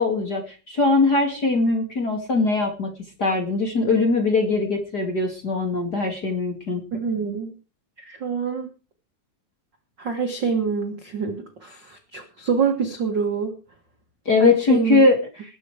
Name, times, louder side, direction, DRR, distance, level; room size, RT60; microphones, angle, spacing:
voice 1, 0.0-2.9 3.2-6.8 14.3-15.2, left 3 dB, 30° left, 3 dB, 2.2 m, -21 dB
voice 2, 6.9-7.5 8.0-8.7 10.0-13.5 14.4-15.0, right 6 dB, 50° right, 4 dB, 1.3 m, -26 dB
20.0 x 8.4 x 4.8 m, 0.34 s
omnidirectional pair, 4.8 m